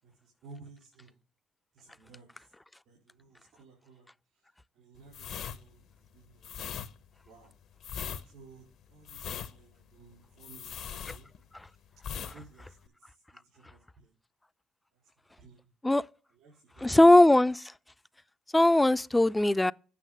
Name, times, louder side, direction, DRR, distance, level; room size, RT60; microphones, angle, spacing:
voice 1, 0.0-1.2 1.7-2.5 2.9-6.8 7.2-7.5 8.2-11.3 11.6-11.9 12.1-14.1 14.9-15.7 16.3-17.0, right 4 dB, 75° right, 4.0 m, -56 dB
sound 1, 5.1-11.7 12.0-12.4 12.6-12.9, left 8 dB, 70° left, 0.8 m, -40 dB
voice 2, 16.8-17.7 18.5-19.7, left 1 dB, 10° left, 0.3 m, -20 dB
8.5 x 5.8 x 5.3 m
supercardioid pair, 65°, 0 cm